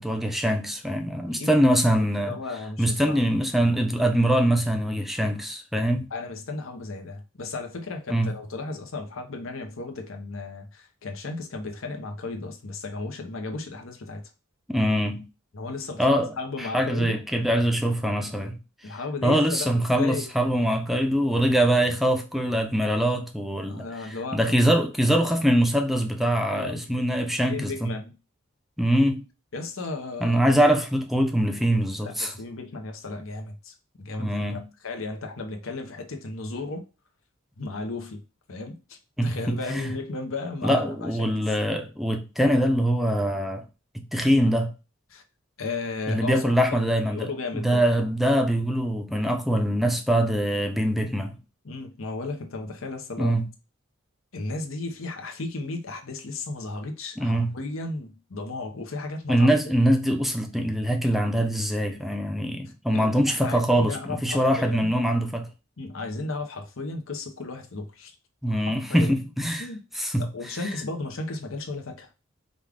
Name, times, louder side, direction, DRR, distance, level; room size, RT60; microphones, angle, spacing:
voice 1, 0.0-2.3 2.8-6.1 8.1-8.3 14.7-15.2 16.0-18.6 19.2-23.8 24.3-27.9 28.8-29.2 30.2-32.3 34.2-34.6 39.2-39.9 40.6-43.6 44.1-44.7 46.1-51.4 53.2-53.4 57.2-57.5 59.3-65.5 68.4-69.7 70.0-70.3, equal, ahead, 0.5 m, -23 dB
voice 2, 1.3-3.3 6.1-14.3 15.5-17.2 18.8-20.3 23.7-24.8 26.5-27.1 27.4-28.1 29.5-30.4 32.0-36.8 37.6-38.2 38.5-41.5 45.1-45.2 45.6-47.8 51.6-53.4 54.3-59.5 62.9-64.9 65.8-68.1 68.5-68.6 68.9-69.2 69.6-69.8 70.2-72.1, left 3 dB, 75° left, 0.9 m, -35 dB
5.2 x 2.4 x 3.5 m
head